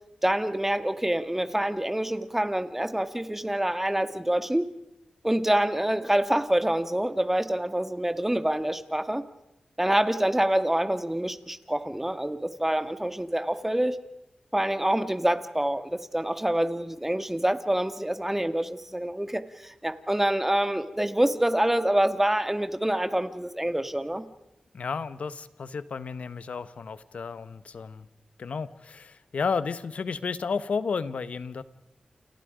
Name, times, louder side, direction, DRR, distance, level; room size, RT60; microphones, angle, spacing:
voice 1, 0.2-4.7 5.2-9.2 9.8-14.0 14.5-24.3, right 1 dB, 10° right, 10 dB, 1.9 m, -26 dB
voice 2, 24.7-28.1 28.4-31.6, left 5 dB, 80° left, 14 dB, 1.2 m, -32 dB
29.0 x 28.5 x 5.1 m, 0.85 s
cardioid pair, 60°, 2 cm